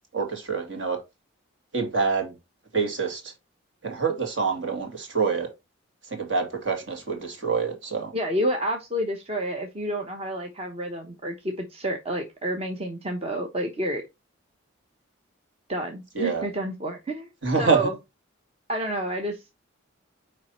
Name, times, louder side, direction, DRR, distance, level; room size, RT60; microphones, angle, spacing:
voice 1, 0.1-1.0 1.7-2.3 2.7-3.3 3.8-5.5 6.1-8.1 16.2-16.4 17.4-17.9, right 5 dB, 60° right, 2.3 m, -26 dB
voice 2, 8.1-14.0 15.7-17.3 17.6-18.0 18.7-19.4, right 1 dB, 30° right, 0.9 m, -29 dB
9.5 x 3.3 x 4.2 m
head